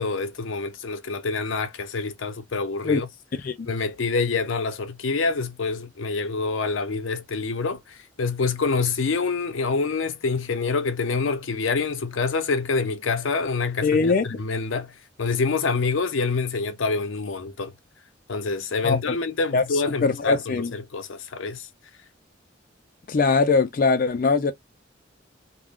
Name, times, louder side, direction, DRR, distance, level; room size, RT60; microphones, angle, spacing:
voice 1, 0.0-3.1 3.7-17.7 18.3-21.7, left 4 dB, 85° left, 0.6 m, -26 dB
voice 2, 13.8-14.4 18.8-19.1 19.5-19.6 20.0-20.7 23.1-24.5, left 4 dB, 45° left, 0.4 m, -21 dB
2.4 x 2.1 x 3.4 m
head